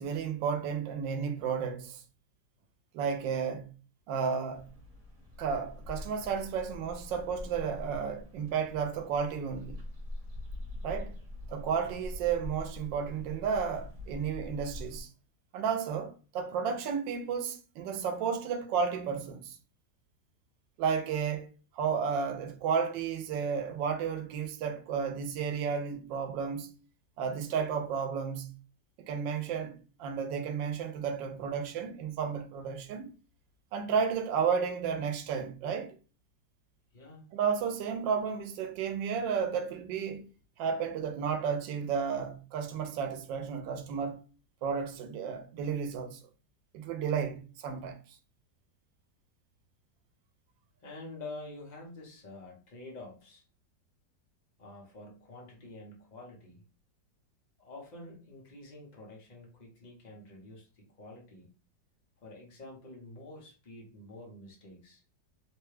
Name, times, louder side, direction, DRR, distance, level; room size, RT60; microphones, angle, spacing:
voice 1, 0.0-2.0 2.9-3.8 4.1-4.7 5.4-9.8 10.8-11.1 11.5-15.1 15.5-19.6 20.8-21.5 21.7-26.7 27.2-28.6 29.0-33.1 33.7-35.9 37.3-40.3 40.6-44.2 44.6-46.2 46.7-48.0, right 6 dB, 85° right, 1.3 m, -32 dB
sound 1, 4.5-15.0, left 1 dB, 50° right, 1.3 m, -44 dB
voice 2, 36.9-37.2 50.8-53.4 54.6-56.6 57.6-61.5 62.2-65.0, left 2 dB, 35° left, 0.7 m, -48 dB
3.1 x 2.2 x 3.2 m
omnidirectional pair, 1.9 m